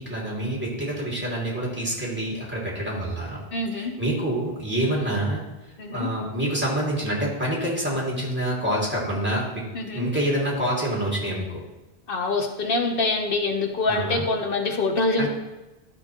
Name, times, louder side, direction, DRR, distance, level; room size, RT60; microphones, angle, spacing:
voice 1, 0.0-3.4 3.7-5.4 5.9-9.6 9.9-11.6 13.9-14.3 15.2-15.3, right 1 dB, 10° right, -4 dB, 2.2 m, -27 dB
voice 2, 3.5-3.9 5.8-6.1 9.7-10.1 12.1-15.3, left 3 dB, 60° left, 3 dB, 1.1 m, -25 dB
12.5 x 5.2 x 2.9 m, 1.1 s
omnidirectional pair, 1.1 m